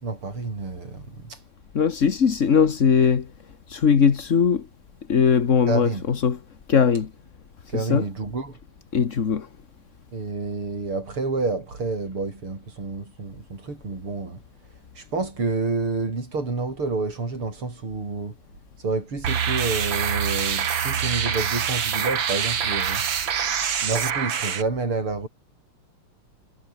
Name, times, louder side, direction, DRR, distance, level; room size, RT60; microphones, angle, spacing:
voice 1, 0.0-1.4 5.7-6.0 7.7-8.6 10.1-14.4 14.7-18.3 18.8-23.1 23.8-25.3, right 3 dB, 80° right, 6.4 m, -29 dB
voice 2, 1.7-3.3 3.7-4.7 5.1-6.4 6.7-7.1 7.7-8.0 8.9-9.5, left 6 dB, 40° left, 1.5 m, -20 dB
sound 1, 19.2-24.6, right 8 dB, 65° right, 2.5 m, -25 dB
omnidirectional pair, 2.4 m